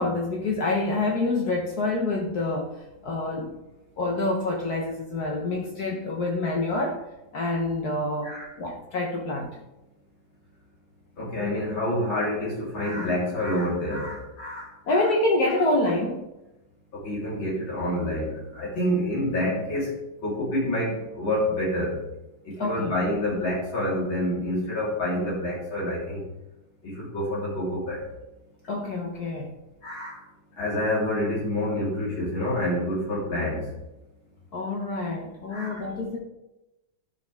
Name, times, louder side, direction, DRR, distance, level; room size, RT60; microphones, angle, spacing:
voice 1, 0.0-2.8 3.0-3.6 4.0-7.0 7.3-9.6 14.9-16.2 22.6-22.9 28.7-29.5 34.5-36.2, left 2 dB, 60° left, 0 dB, 1.3 m, -27 dB
voice 2, 11.2-15.1 16.9-19.9 20.2-22.0 22.4-26.2 26.8-28.0 29.8-30.2 30.6-33.6 35.5-35.8, left 1 dB, 90° left, -7 dB, 4.2 m, -28 dB
12.5 x 6.3 x 3.4 m, 0.97 s
omnidirectional pair, 2.1 m